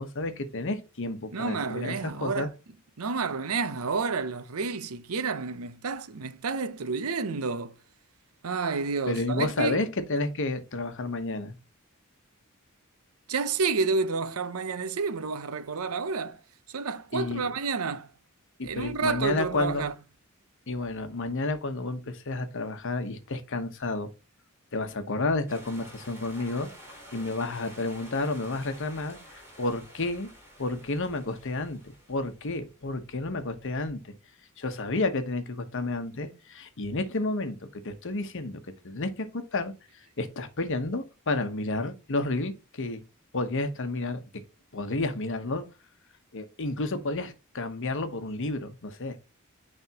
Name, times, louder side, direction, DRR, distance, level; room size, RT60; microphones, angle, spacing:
voice 1, 0.0-2.5 9.1-11.5 17.1-17.5 18.6-19.9 20.7-24.1 24.7-26.7 27.1-29.2 29.6-30.3 30.6-31.8 32.1-34.1 34.6-37.6 37.8-39.7 40.2-43.0 43.3-44.2 44.7-45.6 46.3-49.2, left 2 dB, 60° left, 1.0 m, -31 dB
voice 2, 1.3-2.5 3.0-7.7 8.4-9.8 13.3-16.4 16.7-18.1 18.6-19.9, right 4 dB, 85° right, 0.7 m, -30 dB
sound 1, 25.5-32.7, equal, 10° right, 2.9 m, -50 dB
9.2 x 3.5 x 2.9 m
head